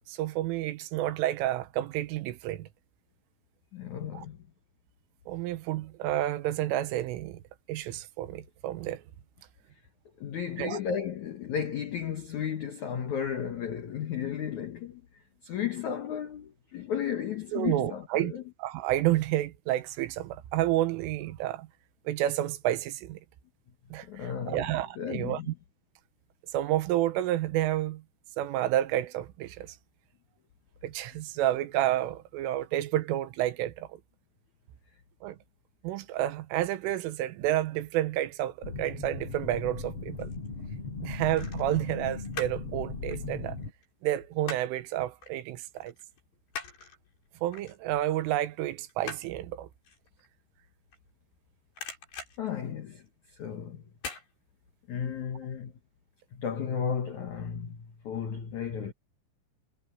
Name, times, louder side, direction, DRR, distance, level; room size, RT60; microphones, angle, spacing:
voice 1, 0.1-2.7 4.1-4.3 5.3-7.4 7.7-9.0 10.6-10.8 17.5-18.3 18.6-21.7 22.1-23.2 23.9-25.5 26.5-28.0 28.4-29.8 30.8-34.0 35.2-35.4 35.8-40.3 41.0-43.6 44.0-45.9 47.4-49.7, right 14 dB, 90° right, 3.6 m, -30 dB
voice 2, 3.7-4.4 10.2-15.0 15.4-18.4 24.0-25.5 52.4-53.8 54.9-55.7 56.3-58.9, left 8 dB, 80° left, 1.7 m, -34 dB
sound 1, 38.6-43.7, left 4 dB, 35° left, 4.1 m, -38 dB
sound 2, 39.9-40.5 41.3-42.7 43.0-44.9 45.2-45.4 45.8-51.4 51.7-53.3 54.0-54.3 54.7-54.8, left 5 dB, 60° left, 7.9 m, -43 dB
omnidirectional pair, 5.7 m